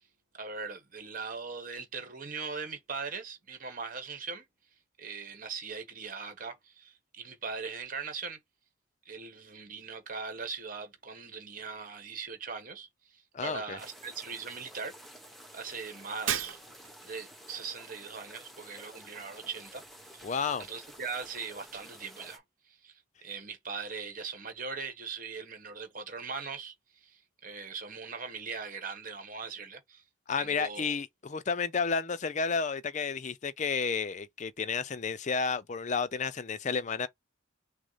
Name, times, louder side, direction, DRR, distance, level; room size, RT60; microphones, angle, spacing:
voice 1, 0.3-4.4 5.0-8.4 9.0-14.9 15.5-16.6 17.0-19.8 20.1-20.3 20.7-30.0 30.4-30.9, right 5 dB, 45° right, 1.2 m, -40 dB
voice 2, 13.3-13.8 20.2-20.7 30.3-37.1, left 5 dB, 35° left, 0.5 m, -31 dB
sound 1, 13.8-22.4, equal, ahead, 1.0 m, -51 dB
Shatter, 16.3-17.1, right 9 dB, 80° right, 0.8 m, -33 dB
6.1 x 2.1 x 4.0 m
head